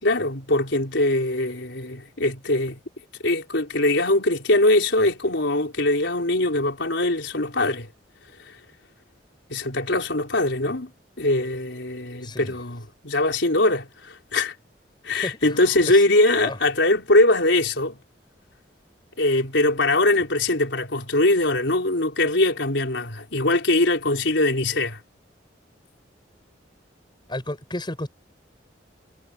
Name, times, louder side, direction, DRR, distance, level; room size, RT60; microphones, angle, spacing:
voice 1, 0.0-2.8 3.2-7.9 9.5-10.9 11.2-14.6 15.0-18.0 19.2-25.0, left 2 dB, 80° left, 4.3 m, -22 dB
voice 2, 12.2-12.6 15.1-16.0 16.4-16.6 27.3-28.1, left 1 dB, 25° left, 7.6 m, -33 dB
head